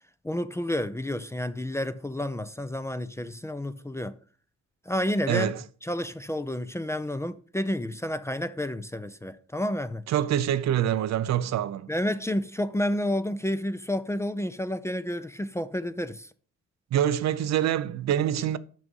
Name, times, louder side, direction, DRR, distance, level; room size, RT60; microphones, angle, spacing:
voice 1, 0.2-4.1 4.9-5.5 5.8-10.0 11.9-16.3, left 1 dB, 10° left, 0.5 m, -30 dB
voice 2, 5.3-5.6 10.1-11.9 16.9-18.6, right 10 dB, 60° right, 0.6 m, -25 dB
6.2 x 6.2 x 5.4 m
cardioid pair, 90°, 30 cm